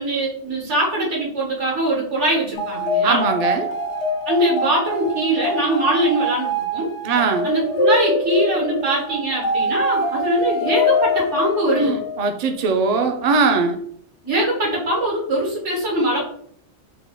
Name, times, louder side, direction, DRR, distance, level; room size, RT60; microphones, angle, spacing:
voice 1, 0.0-3.3 4.3-6.9 7.4-11.9 14.2-16.2, right 1 dB, 90° right, -2 dB, 1.7 m, -22 dB
sound 1, 2.5-12.3, left 2 dB, 85° left, 0.9 m, -24 dB
voice 2, 3.0-3.7 7.0-7.5 11.8-13.8, right 4 dB, 55° right, 5 dB, 0.4 m, -20 dB
3.7 x 2.2 x 3.4 m, 0.66 s
omnidirectional pair, 1.2 m